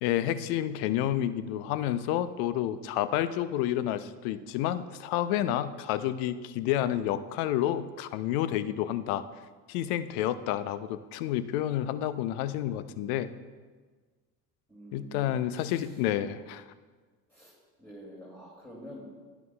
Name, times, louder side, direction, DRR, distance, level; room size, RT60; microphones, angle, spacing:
voice 1, 0.0-9.2 9.7-13.3 14.9-16.6, left 12 dB, 65° left, 14 dB, 0.6 m, -29 dB
voice 2, 14.7-16.1 17.3-17.5 17.8-19.1, equal, 5° left, -6 dB, 2.4 m, -47 dB
10.5 x 9.8 x 2.3 m, 1.4 s
hypercardioid pair, 65°, 48 cm